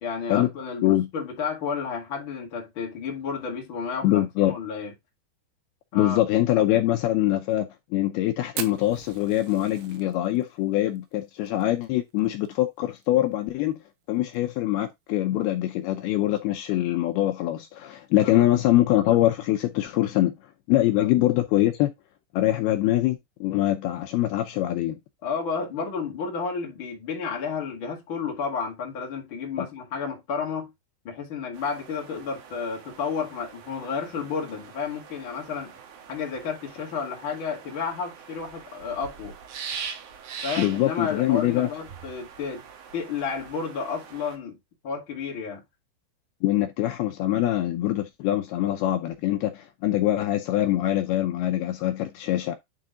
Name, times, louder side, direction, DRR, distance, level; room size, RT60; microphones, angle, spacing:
voice 1, 0.0-4.9 5.9-6.2 18.2-18.5 21.0-21.1 25.2-30.7 31.0-35.7 36.1-39.3 40.4-42.6 42.9-44.6 44.8-45.6, left 5 dB, 35° left, 2.2 m, -31 dB
voice 2, 4.0-4.6 5.9-13.8 14.1-20.3 20.7-21.9 22.3-25.0 29.6-29.7 40.6-41.7 46.4-52.5, left 14 dB, 80° left, 2.2 m, -24 dB
Fire, 8.6-13.1 13.3-13.4 13.7-13.8 14.2-14.6 15.1-15.2 16.2-16.4, right 11 dB, 85° right, 3.2 m, -40 dB
sound 1, 31.5-44.4, right 6 dB, 65° right, 2.7 m, -42 dB
9.9 x 3.9 x 3.7 m
omnidirectional pair, 5.2 m